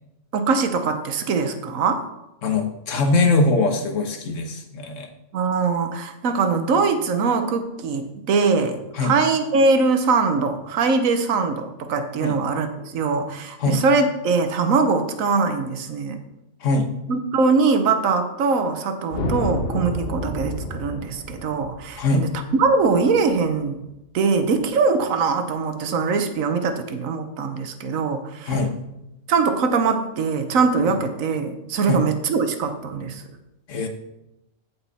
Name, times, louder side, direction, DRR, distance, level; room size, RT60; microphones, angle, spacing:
voice 1, 0.3-2.0 5.3-16.2 17.1-22.3 22.6-23.8 24.1-28.5 29.3-33.2, right 4 dB, 70° right, 7 dB, 1.3 m, -22 dB
voice 2, 2.4-5.1 8.9-9.1 12.2-12.4 13.6-13.8 16.6-16.9 22.0-22.3 28.5-28.7 31.9-32.0 33.7-33.9, left 3 dB, 65° left, 6 dB, 1.4 m, -22 dB
sound 1, 19.1-23.5, left 1 dB, 45° left, 1.4 m, -30 dB
14.0 x 5.5 x 4.1 m, 0.91 s
omnidirectional pair, 1.5 m